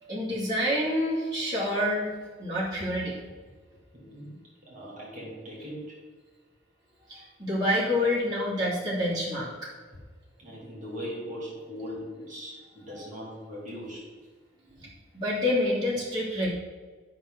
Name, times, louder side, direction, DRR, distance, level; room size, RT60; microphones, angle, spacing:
voice 1, 0.0-3.2 7.1-9.7 14.7-16.5, left 1 dB, 20° right, -9 dB, 2.7 m, -28 dB
voice 2, 3.9-4.3 4.7-6.0 10.4-14.1, equal, 40° right, -5 dB, 2.6 m, -39 dB
11.5 x 6.0 x 3.9 m, 1.5 s
head